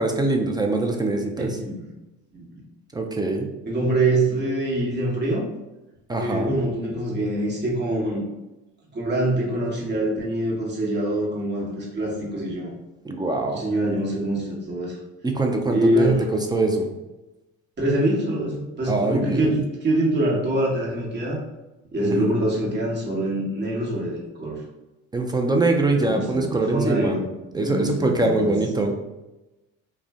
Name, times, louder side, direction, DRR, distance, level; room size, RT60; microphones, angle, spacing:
voice 1, 0.0-1.5 2.9-3.5 6.1-6.6 13.0-13.6 15.2-16.1 16.5-16.9 18.9-19.6 22.1-22.3 25.1-27.2 27.5-28.9, right 2 dB, 15° right, 2 dB, 0.3 m, -23 dB
voice 2, 1.4-1.9 2.3-2.6 3.6-5.4 6.2-8.3 8.9-12.7 13.5-15.0 15.7-16.2 17.8-21.4 21.9-24.6 25.9-28.5, right 1 dB, 30° right, -4 dB, 1.2 m, -24 dB
2.4 x 2.1 x 3.4 m, 1.0 s
supercardioid pair, 80°, 33 cm